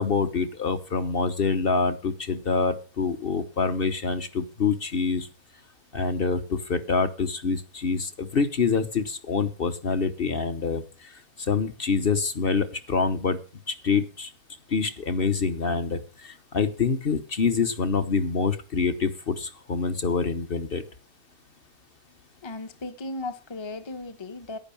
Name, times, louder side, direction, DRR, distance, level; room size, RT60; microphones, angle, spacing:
voice 1, 0.0-5.3 5.9-13.4 13.7-14.3 14.7-20.8, left 4 dB, 40° left, 1.1 m, -26 dB
voice 2, 22.4-24.6, left 2 dB, 25° left, 0.8 m, -36 dB
11.0 x 9.5 x 6.9 m
omnidirectional pair, 1.6 m